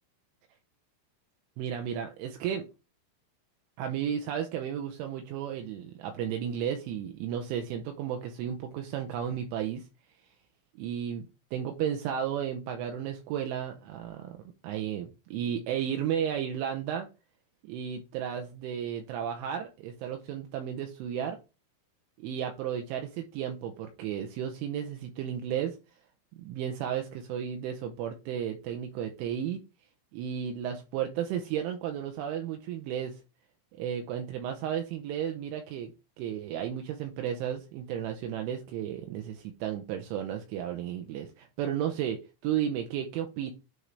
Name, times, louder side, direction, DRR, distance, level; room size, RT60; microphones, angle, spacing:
voice 1, 1.6-2.7 3.8-9.8 10.8-14.4 14.6-17.1 17.6-21.4 22.2-25.8 26.3-29.6 30.1-33.2 33.7-35.9 36.2-43.5, right 9 dB, 80° right, 5 dB, 2.9 m, -33 dB
9.5 x 3.8 x 3.2 m, 0.29 s
omnidirectional pair, 5.8 m